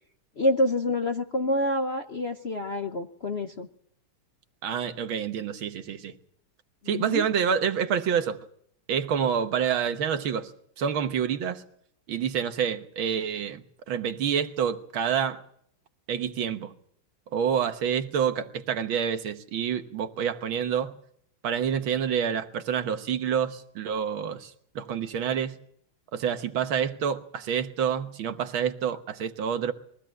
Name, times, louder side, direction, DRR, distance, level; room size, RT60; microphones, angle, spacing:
voice 1, 0.4-3.7 6.8-7.3, left 1 dB, 45° left, 0.8 m, -27 dB
voice 2, 4.6-6.1 6.9-8.4 8.9-10.5 10.8-11.6 12.1-15.4 16.1-16.7 17.3-21.0 21.4-25.6 26.1-29.7, right 8 dB, 70° right, 1.9 m, -28 dB
22.5 x 16.0 x 7.7 m
omnidirectional pair, 2.3 m